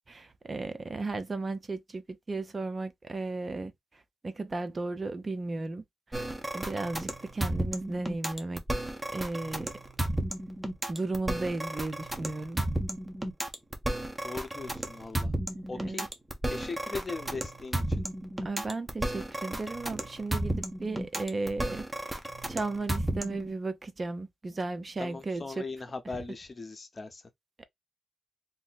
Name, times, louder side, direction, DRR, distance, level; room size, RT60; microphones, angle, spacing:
voice 1, 0.1-3.7 4.2-5.8 6.1-6.2 6.5-8.6 9.1-9.7 10.9-12.6 15.7-16.1 18.4-22.2 22.5-25.6, right 3 dB, 35° right, 0.5 m, -35 dB
sound 1, 6.1-23.5, right 1 dB, 15° right, 0.9 m, -33 dB
voice 2, 14.2-15.3 15.7-16.1 16.5-17.8 25.0-27.2, left 3 dB, 35° left, 0.8 m, -39 dB
2.6 x 2.0 x 3.9 m
cardioid pair, 75°, 0 cm